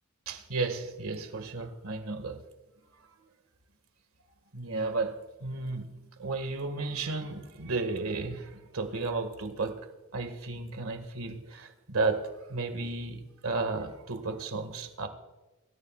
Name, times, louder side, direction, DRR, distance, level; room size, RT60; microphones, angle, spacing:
voice 1, 0.2-2.4 4.5-9.8 10.1-15.1, right 3 dB, 75° right, 7 dB, 1.8 m, -33 dB
24.0 x 14.0 x 2.4 m, 1.1 s
head